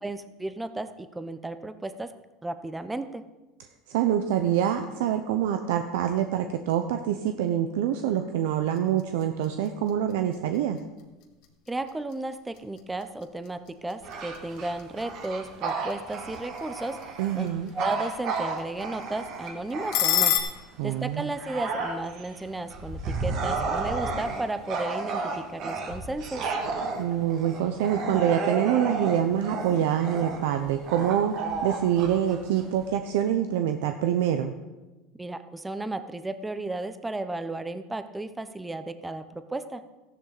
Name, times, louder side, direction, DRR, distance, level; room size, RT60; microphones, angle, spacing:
voice 1, 0.0-2.1 2.4-3.2 11.7-17.0 17.3-17.5 17.7-20.3 20.8-26.5 35.2-39.8, right 2 dB, 10° right, 11 dB, 0.7 m, -34 dB
voice 2, 3.9-10.8 17.2-17.7 20.8-21.3 27.0-31.3 31.6-34.5, right 10 dB, 80° right, 7 dB, 0.7 m, -25 dB
sound 1, 8.6-20.4, left 11 dB, 65° left, 1.9 m, -35 dB
Bark / Growling, 14.0-20.6 21.0-32.9, right 4 dB, 55° right, 2.5 m, -32 dB
14.0 x 11.0 x 4.0 m, 1.1 s
supercardioid pair, 125°, 0 cm